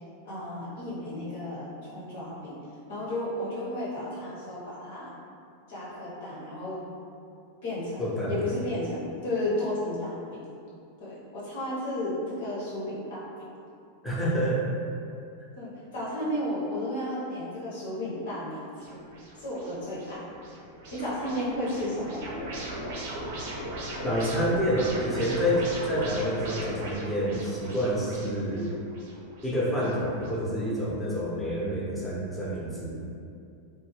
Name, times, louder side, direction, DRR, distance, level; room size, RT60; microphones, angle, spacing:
voice 1, 0.2-2.6 2.9-5.1 5.7-6.8 7.6-10.2 11.0-13.2 15.5-19.0 19.3-20.2 20.9-22.2, left 1 dB, 55° left, -8 dB, 0.9 m, -33 dB
voice 2, 8.0-8.5 14.0-14.6 24.0-28.7 29.4-32.9, equal, 10° left, -6 dB, 0.7 m, -28 dB
sound 1, 18.8-30.3, right 1 dB, 50° right, 0.5 m, -38 dB
2.2 x 2.2 x 3.2 m, 2.5 s
figure-of-eight pair, 90°, 0 cm